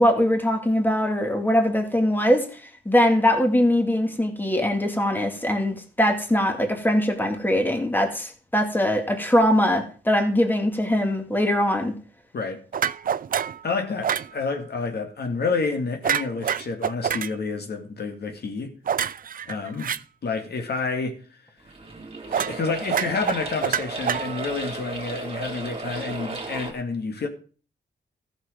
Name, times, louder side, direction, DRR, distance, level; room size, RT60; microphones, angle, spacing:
voice 1, 0.0-2.5 2.9-11.9, left 1 dB, 10° left, 2.2 m, -21 dB
sound 1, 12.7-13.6 14.0-14.3 16.0-17.3 18.9-20.0 22.3-22.6 22.9-24.6, right 8 dB, 50° right, 0.5 m, -26 dB
voice 2, 13.6-18.7 19.5-19.9 20.2-21.4 22.3-27.3, left 4 dB, 60° left, 2.1 m, -29 dB
sound 2, 21.6-26.7, right 3 dB, 30° right, 2.7 m, -35 dB
14.0 x 6.7 x 5.1 m
cardioid pair, 100°, 19 cm